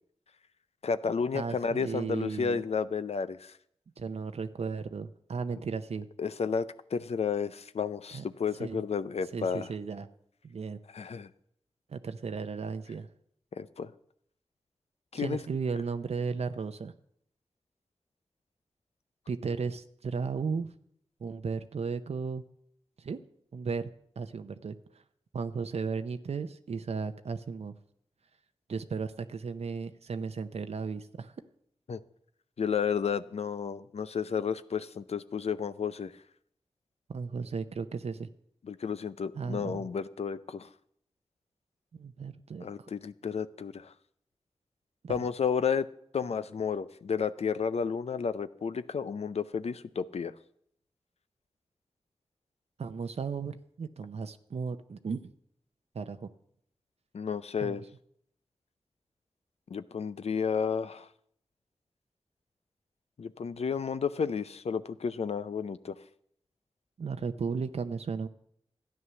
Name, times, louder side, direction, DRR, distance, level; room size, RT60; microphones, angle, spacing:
voice 1, 0.8-3.5 6.2-9.7 10.9-11.3 13.5-13.9 15.1-15.4 31.9-32.0 32.6-36.1 38.6-40.7 42.6-43.9 45.1-45.9 46.1-50.3 57.1-57.8 59.7-61.1 63.2-66.0, left 6 dB, 80° left, 13 dB, 0.5 m, -32 dB
voice 2, 1.3-2.6 4.0-6.1 8.1-8.2 8.6-8.8 9.3-10.1 10.4-10.8 11.9-13.1 15.1-16.9 19.3-20.7 21.2-22.4 23.0-23.2 23.5-23.9 24.2-24.8 25.3-27.7 28.7-31.3 37.1-38.3 39.3-39.9 41.9-42.9 45.0-45.2 52.8-55.3 55.9-56.3 57.6-57.8 67.0-68.3, right 5 dB, 80° right, 9 dB, 0.7 m, -35 dB
12.5 x 9.6 x 6.9 m, 0.68 s
wide cardioid pair, 55°, 11 cm